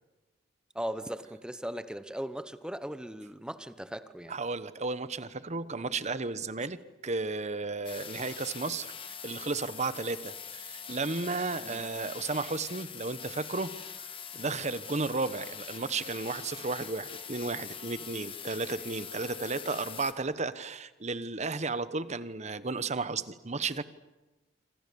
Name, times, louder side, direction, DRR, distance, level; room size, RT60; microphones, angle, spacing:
voice 1, 0.7-4.3 11.6-11.9, equal, 5° right, 11 dB, 0.9 m, -38 dB
voice 2, 4.3-13.7 14.0-14.1 14.3-23.8, right 3 dB, 40° right, 14 dB, 1.1 m, -34 dB
sound 1, 7.8-20.1, left 7 dB, 30° left, 1.8 m, -43 dB
27.0 x 25.5 x 7.0 m, 1.1 s
head